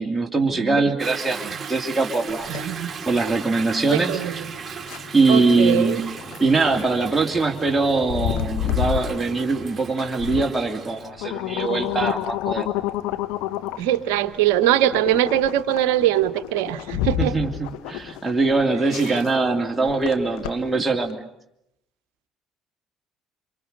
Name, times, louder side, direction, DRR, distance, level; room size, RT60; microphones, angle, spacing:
voice 1, 0.0-1.4 1.7-2.5 3.1-4.2 5.1-6.0 6.4-12.7 17.2-21.2, right 3 dB, 10° right, 1 dB, 2.8 m, -22 dB
voice 2, 0.5-0.9 1.4-1.5 2.5-2.9 3.9-4.5 5.3-6.0 13.8-17.4 19.1-19.2, right 12 dB, 70° right, 11 dB, 1.0 m, -22 dB
Toilet flush / Drip / Trickle dribble, 1.0-11.1, right 6 dB, 35° right, 2.1 m, -36 dB
sound 1, 2.3-21.1, left 12 dB, 70° left, 0.9 m, -31 dB
28.0 x 25.5 x 6.7 m, 0.80 s
figure-of-eight pair, 55°, 0 cm